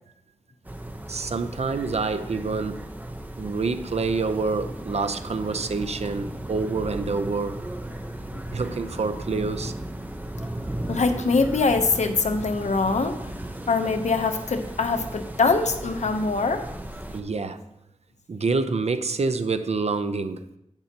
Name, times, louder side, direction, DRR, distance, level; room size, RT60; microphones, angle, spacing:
sound 1, 0.6-17.2, right 1 dB, 15° right, 0.9 m, -36 dB
voice 1, 1.1-2.8 3.4-7.6 8.5-9.7 17.1-17.6 18.3-20.4, right 4 dB, 60° right, 0.7 m, -27 dB
voice 2, 10.9-13.2 13.7-16.6, left 4 dB, 75° left, 0.9 m, -23 dB
10.5 x 9.2 x 2.9 m
wide cardioid pair, 95°, 12 cm